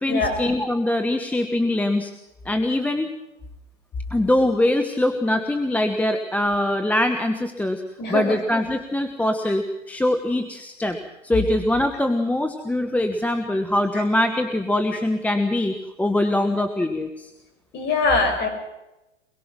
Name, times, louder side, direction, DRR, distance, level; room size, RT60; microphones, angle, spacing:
voice 1, 0.0-2.1 2.4-3.1 4.1-7.8 8.1-11.0 11.2-17.3, left 1 dB, 5° left, 6 dB, 1.3 m, -23 dB
voice 2, 8.0-8.4 17.7-18.5, left 3 dB, 30° left, 6 dB, 6.7 m, -22 dB
24.0 x 22.0 x 6.1 m, 0.97 s
hypercardioid pair, 125°, 38 cm